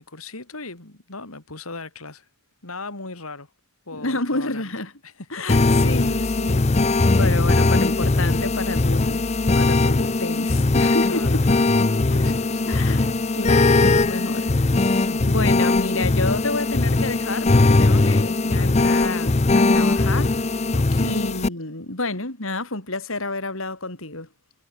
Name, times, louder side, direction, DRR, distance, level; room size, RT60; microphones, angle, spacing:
voice 1, 0.0-2.3 2.6-3.5 3.9-4.6 5.0-5.8 11.0-13.1 14.9-15.4 20.7-21.2, left 3 dB, 90° left, 4.1 m, -39 dB
voice 2, 3.9-4.9 5.3-6.7 7.2-9.3 9.5-11.4 12.1-12.3 12.7-20.4 21.0-24.3, left 2 dB, 70° left, 4.9 m, -29 dB
sound 1, 5.5-21.5, left 2 dB, 30° left, 0.6 m, -19 dB
head